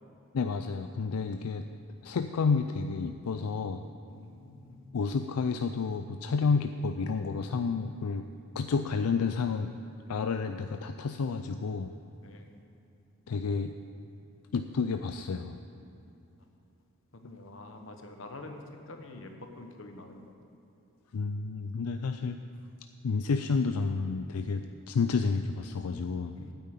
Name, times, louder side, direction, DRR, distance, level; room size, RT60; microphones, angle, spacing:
voice 1, 0.3-1.7 2.0-3.8 4.9-8.2 8.5-9.7 10.1-11.9 13.3-13.7 14.5-15.6 21.1-22.4 23.0-26.3, left 5 dB, 85° left, 8 dB, 0.4 m, -30 dB
voice 2, 4.1-4.8 12.2-12.5 17.1-20.3 26.4-26.5, left 2 dB, 60° left, 5 dB, 1.2 m, -46 dB
9.3 x 8.7 x 8.3 m, 2.8 s
head